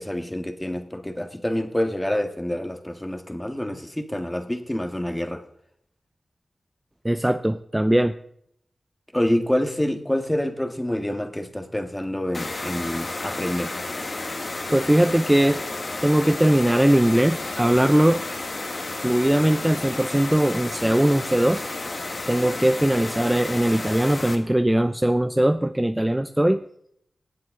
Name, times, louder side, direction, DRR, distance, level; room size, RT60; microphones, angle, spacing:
voice 1, 0.0-5.4 9.1-13.7, left 1 dB, 10° left, 6 dB, 1.6 m, -27 dB
voice 2, 7.0-8.1 14.7-15.6 16.0-18.2 19.0-21.6 22.3-26.6, right 1 dB, 15° right, 9 dB, 0.6 m, -20 dB
sound 1, 12.3-24.4, left 2 dB, 50° left, 1.8 m, -32 dB
18.0 x 7.6 x 3.7 m, 0.68 s
cardioid pair, 55°, 0 cm